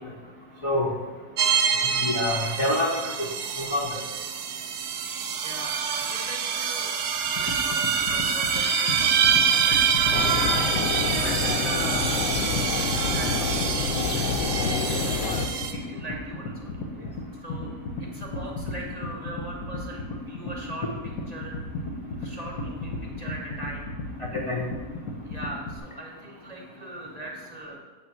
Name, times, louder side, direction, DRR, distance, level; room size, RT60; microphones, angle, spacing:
voice 1, 0.6-1.0 1.8-3.1 3.6-4.0 24.2-24.7, left 1 dB, 40° left, -3 dB, 0.4 m, -27 dB
sound 1, 1.4-15.7, right 6 dB, 70° right, 0.6 m, -26 dB
voice 2, 5.4-6.9 7.3-10.1 11.0-12.2 12.7-16.8 17.4-17.7 18.0-20.9 21.3-21.6 22.1-23.9 24.8-24.9 25.2-27.8, right 1 dB, 30° right, -2 dB, 0.9 m, -40 dB
sound 2, 7.2-25.8, left 2 dB, 85° left, 1.4 m, -35 dB
sound 3, 10.1-15.5, left 5 dB, 65° left, 0.8 m, -28 dB
7.2 x 3.3 x 6.1 m, 1.4 s
omnidirectional pair, 1.7 m